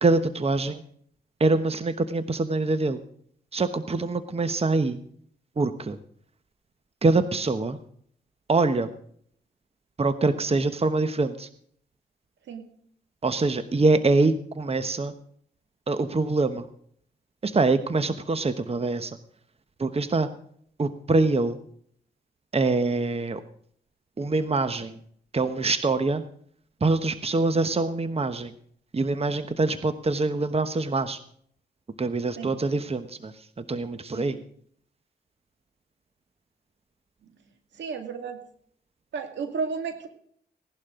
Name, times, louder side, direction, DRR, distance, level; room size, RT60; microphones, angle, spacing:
voice 1, 0.0-0.8 1.4-3.0 3.5-5.0 5.6-6.0 7.0-7.8 8.5-8.9 10.0-11.5 13.2-15.1 15.9-16.7 17.4-19.2 19.8-20.3 20.8-21.6 22.5-23.4 24.2-25.0 25.3-26.2 26.8-28.5 28.9-31.2 32.0-34.4, right 3 dB, 35° right, 11 dB, 1.1 m, -24 dB
voice 2, 37.8-38.4 39.1-40.1, right 5 dB, 85° right, 6 dB, 2.2 m, -32 dB
17.0 x 11.5 x 3.8 m, 0.62 s
cardioid pair, 60°, 18 cm